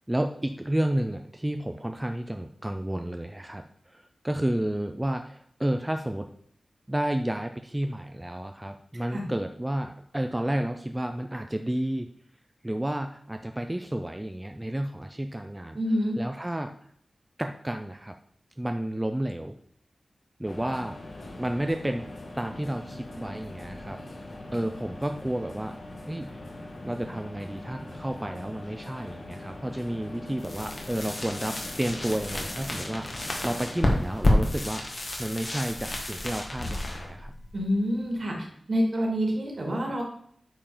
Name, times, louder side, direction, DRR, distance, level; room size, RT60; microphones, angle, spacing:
voice 1, 0.1-6.3 6.9-12.1 12.6-15.8 16.2-16.7 17.4-18.1 18.6-19.6 20.4-21.0 21.3-22.0 22.4-25.8 26.1-26.3 26.8-37.3, right 1 dB, 15° right, 6 dB, 0.5 m, -31 dB
voice 2, 15.7-16.1 37.5-40.0, equal, 55° right, 0 dB, 2.5 m, -27 dB
sound 1, 20.4-34.0, left 1 dB, 60° left, 1.4 m, -42 dB
sound 2, 30.4-38.1, left 1 dB, 45° left, 1.8 m, -30 dB
8.8 x 4.8 x 5.0 m, 0.66 s
wide cardioid pair, 100°, 0 cm